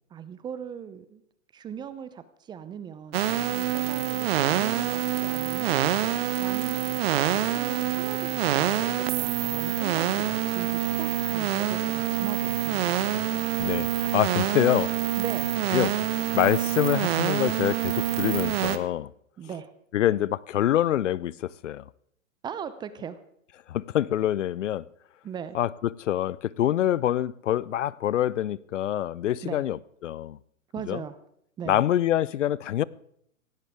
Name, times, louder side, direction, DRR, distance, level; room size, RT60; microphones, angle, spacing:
voice 1, 0.1-1.2 1.5-5.8 6.4-6.8 7.5-13.2 15.2-15.5 19.4-19.7 22.4-23.2 25.2-25.6 29.4-29.7 30.7-31.2 31.6-31.8, right 8 dB, 10° right, 0.6 m, -39 dB
sound 1, 3.1-18.8, right 12 dB, 50° right, 1.3 m, -26 dB
voice 2, 13.6-14.9 15.7-15.9 16.3-19.1 19.9-21.8 23.7-24.8 25.5-29.8 30.0-30.4 30.9-31.0 31.7-32.8, left 12 dB, 65° left, 0.7 m, -25 dB
17.0 x 16.5 x 3.5 m
hypercardioid pair, 125°, 40 cm